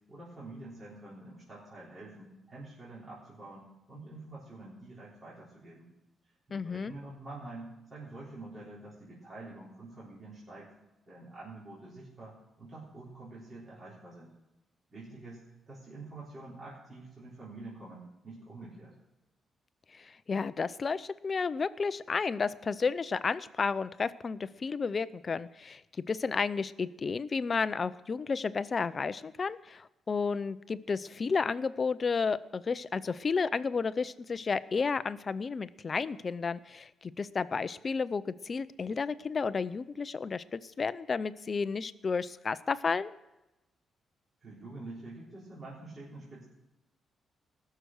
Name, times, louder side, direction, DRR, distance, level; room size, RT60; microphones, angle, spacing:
voice 1, 0.1-5.9 6.5-10.7 11.1-14.3 14.9-19.0 44.4-46.4, right 2 dB, 30° right, -8 dB, 3.8 m, -47 dB
voice 2, 6.5-6.9 20.3-25.8 26.1-43.1, left 5 dB, 30° left, 16 dB, 0.4 m, -32 dB
19.5 x 6.7 x 6.3 m, 0.98 s
cardioid pair, 150°, 0 cm